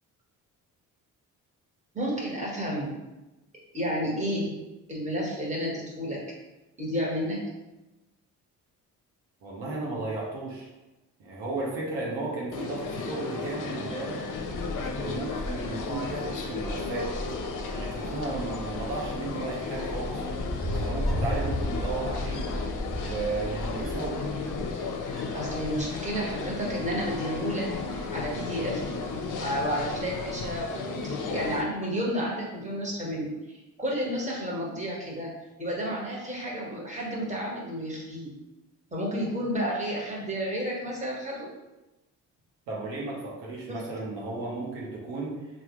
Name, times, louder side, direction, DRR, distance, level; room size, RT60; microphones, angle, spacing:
voice 1, 1.9-2.9 3.7-4.6 4.9-6.2 6.8-7.4 25.3-29.0 29.4-35.3 35.6-38.3 38.9-41.5 43.7-43.8, equal, 15° right, -4 dB, 1.3 m, -31 dB
voice 2, 9.4-10.7 11.2-14.2 14.9-17.1 17.6-20.2 20.7-22.4 23.0-24.2 42.7-45.4, right 3 dB, 85° right, -5 dB, 0.9 m, -34 dB
sound 1, 12.5-31.6, left 4 dB, 50° left, 0.5 m, -34 dB
Wind, 14.3-30.6, left 1 dB, ahead, 0.4 m, -36 dB
sound 2, 19.8-20.3, right 2 dB, 60° right, 0.8 m, -45 dB
3.4 x 2.3 x 3.0 m, 1.0 s
hypercardioid pair, 50°, 42 cm